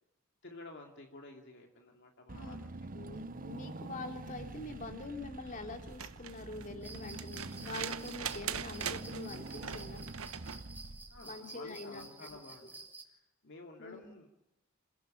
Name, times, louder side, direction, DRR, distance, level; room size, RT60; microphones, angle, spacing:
voice 1, 0.4-2.9 11.1-12.8 13.0-14.3, left 2 dB, 55° left, 2 dB, 2.5 m, -52 dB
Car / Engine, 2.3-11.5, right 2 dB, 40° right, 0.9 m, -46 dB
voice 2, 2.9-10.0 11.2-12.1 13.8-14.1, left 2 dB, 40° left, 4 dB, 3.3 m, -45 dB
sound 1, 5.8-10.7 12.3-12.4, right 8 dB, 85° right, 1.2 m, -42 dB
sound 2, 6.8-13.0, right 3 dB, 10° right, 2.9 m, -52 dB
28.0 x 16.0 x 8.7 m, 0.95 s
head